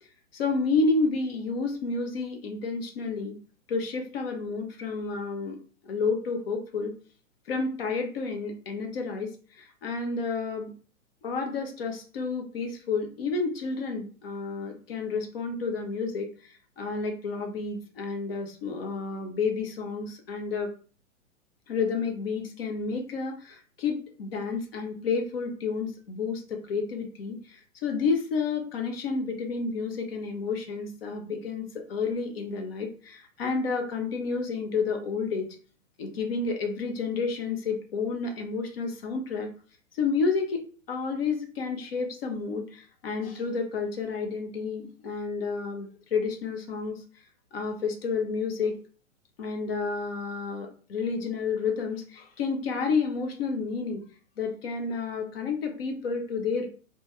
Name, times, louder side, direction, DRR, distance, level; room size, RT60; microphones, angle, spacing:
voice 1, 0.3-3.3 3.7-5.6 5.8-6.9 7.5-9.3 9.6-10.7 11.2-20.7 21.7-35.5 36.0-39.5 39.9-40.6 40.9-47.0 47.5-48.8 49.4-54.0 54.4-56.7, left 4 dB, 45° left, 4 dB, 0.7 m, -30 dB
2.3 x 2.2 x 2.8 m, 0.40 s
figure-of-eight pair, 115°, 42 cm